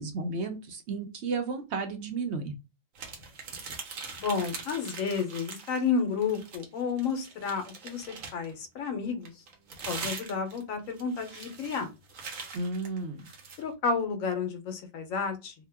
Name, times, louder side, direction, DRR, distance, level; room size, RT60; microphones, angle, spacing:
voice 1, 0.0-2.5 12.5-13.3, right 3 dB, 65° right, 6 dB, 0.8 m, -33 dB
sound 1, 2.9-5.9 6.2-8.5 9.2-13.6, right 4 dB, 80° right, 1.2 m, -42 dB
voice 2, 4.2-9.3 9.9-11.9 13.6-15.5, left 5 dB, 90° left, 7 dB, 1.1 m, -31 dB
2.8 x 2.2 x 3.3 m, 0.27 s
omnidirectional pair, 1.4 m